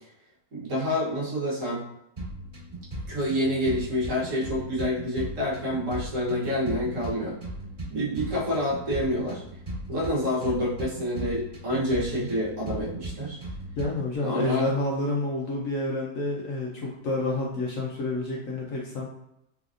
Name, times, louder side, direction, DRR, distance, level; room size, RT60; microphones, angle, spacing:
voice 1, 0.5-1.8 3.1-7.3 7.9-9.4 9.9-13.4 14.2-14.7, left 1 dB, 55° right, -6 dB, 1.3 m, -28 dB
sound 1, 2.2-14.2, right 1 dB, 25° right, 1.4 m, -38 dB
voice 2, 13.8-19.1, left 2 dB, 65° left, -2 dB, 0.9 m, -29 dB
3.7 x 3.4 x 2.4 m, 0.82 s
omnidirectional pair, 1.8 m